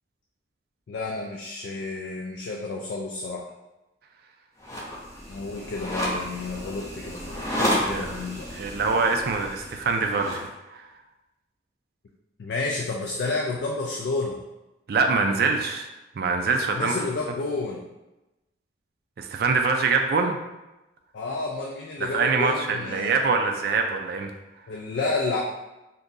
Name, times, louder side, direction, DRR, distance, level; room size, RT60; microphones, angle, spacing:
voice 1, 0.9-3.5 5.3-8.7 12.4-14.4 16.7-17.8 21.1-23.2 24.7-25.4, left 3 dB, 65° left, -1 dB, 0.3 m, -30 dB
sound 1, 4.6-10.5, equal, 15° left, 0.6 m, -31 dB
voice 2, 8.5-10.4 10.7-10.8 14.9-15.9 16.2-16.9 19.2-20.4 22.1-24.3, right 4 dB, 55° right, 4 dB, 0.3 m, -24 dB
2.7 x 2.5 x 3.7 m, 1.0 s
head